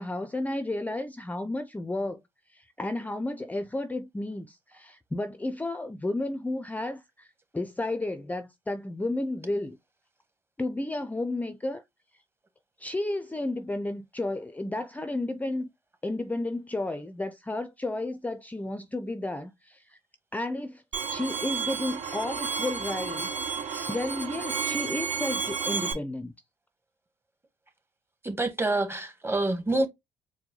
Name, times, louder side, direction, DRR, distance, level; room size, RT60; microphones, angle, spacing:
voice 1, 0.0-2.2 2.5-9.8 10.6-11.8 12.8-15.7 16.0-20.0 20.3-20.8 21.1-23.3 23.6-26.3, left 2 dB, 10° left, 0.5 m, -32 dB
Bowed string instrument, 20.9-25.9, right 6 dB, 60° right, 2.6 m, -31 dB
voice 2, 28.2-29.9, right 2 dB, 20° right, 1.3 m, -27 dB
4.5 x 2.2 x 3.9 m
supercardioid pair, 70°, 13 cm